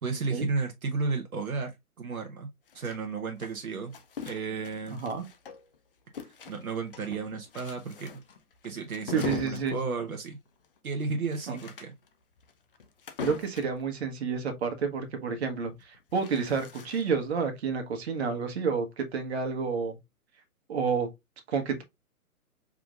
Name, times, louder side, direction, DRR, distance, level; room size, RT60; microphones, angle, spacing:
voice 1, 0.0-1.7 2.0-2.5 2.7-3.9 4.2-5.0 6.2-8.2 8.6-10.4 10.8-11.9, right 4 dB, 65° right, 1.1 m, -33 dB
sound 1, 2.7-5.8 6.1-13.8 15.7-17.3, left 6 dB, 40° left, 0.6 m, -42 dB
voice 2, 4.9-5.2 9.1-9.8 11.5-11.6 13.2-20.0 20.7-21.1 21.5-21.8, right 5 dB, 45° right, 1.4 m, -30 dB
4.8 x 3.7 x 2.4 m
figure-of-eight pair, 140°, 45 cm